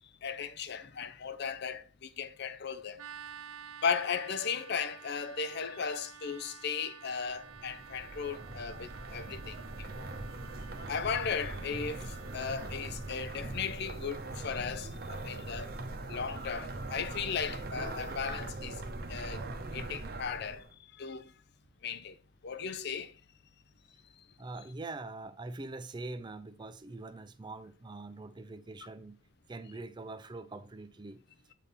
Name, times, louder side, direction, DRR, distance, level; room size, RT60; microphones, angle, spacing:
voice 1, 0.2-3.0 3.8-10.1 10.9-15.7 16.1-18.8 19.1-19.4 19.7-20.6 21.0-21.3 21.8-22.1 22.4-23.1, left 6 dB, 55° left, 0.5 m, -36 dB
sound 1, 3.0-13.6, right 7 dB, 90° right, 0.5 m, -51 dB
sound 2, 7.2-20.7, right 2 dB, 50° right, 0.8 m, -41 dB
voice 2, 24.4-29.2 29.5-31.2, right 2 dB, 20° right, 0.4 m, -43 dB
8.2 x 3.6 x 4.2 m
head